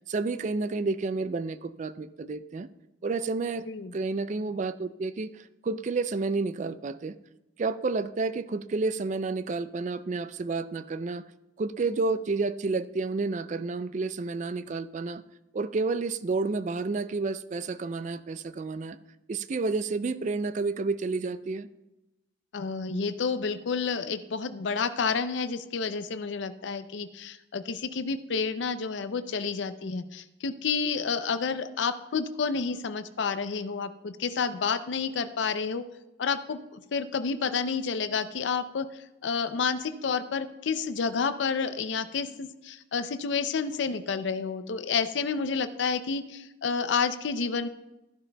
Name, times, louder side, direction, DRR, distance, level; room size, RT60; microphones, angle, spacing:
voice 1, 0.1-2.7 3.0-3.7 3.9-7.1 7.6-11.2 11.6-15.2 15.5-19.0 19.3-21.7, right 3 dB, 40° right, 14 dB, 0.3 m, -30 dB
voice 2, 22.5-35.8 36.2-38.9 39.2-47.7, left 5 dB, 70° left, 11 dB, 0.5 m, -30 dB
12.5 x 11.0 x 2.2 m, 0.97 s
head